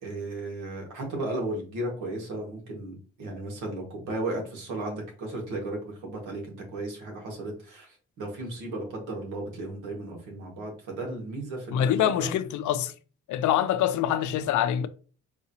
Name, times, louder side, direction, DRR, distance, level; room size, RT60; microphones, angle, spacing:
voice 1, 0.0-12.3, right 2 dB, 90° right, 1.7 m, -35 dB
voice 2, 11.7-12.9 13.3-14.9, left 10 dB, 75° left, 0.5 m, -25 dB
4.7 x 2.8 x 2.8 m
cardioid pair, 90°, 30 cm